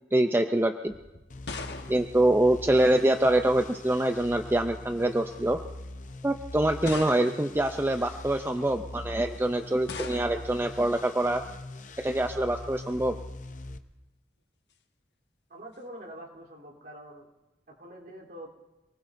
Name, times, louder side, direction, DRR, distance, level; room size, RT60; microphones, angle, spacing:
voice 1, 0.1-0.9 1.9-5.6 6.2-11.4 12.0-13.1, right 1 dB, 15° right, 6 dB, 0.4 m, -25 dB
sound 1, 0.9-3.2 4.2-4.7 5.5-5.6 6.8-7.7 9.9-10.6, left 4 dB, 70° left, 1.2 m, -41 dB
sound 2, 1.3-13.8, left 2 dB, 45° left, 0.7 m, -43 dB
voice 2, 15.5-17.3 17.7-18.5, right 1 dB, 60° right, -3 dB, 3.4 m, -45 dB
27.5 x 19.5 x 2.6 m, 1.1 s
head